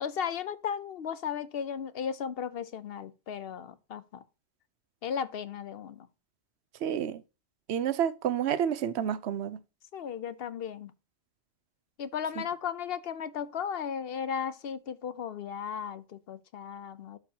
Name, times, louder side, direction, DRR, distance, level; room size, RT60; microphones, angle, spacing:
voice 1, 0.0-4.2 5.0-6.1 9.9-10.9 12.0-17.2, left 7 dB, 65° left, 0.9 m, -35 dB
voice 2, 6.8-7.2 7.7-9.6, right 9 dB, 85° right, 0.9 m, -29 dB
12.0 x 4.5 x 2.8 m
omnidirectional pair, 1.1 m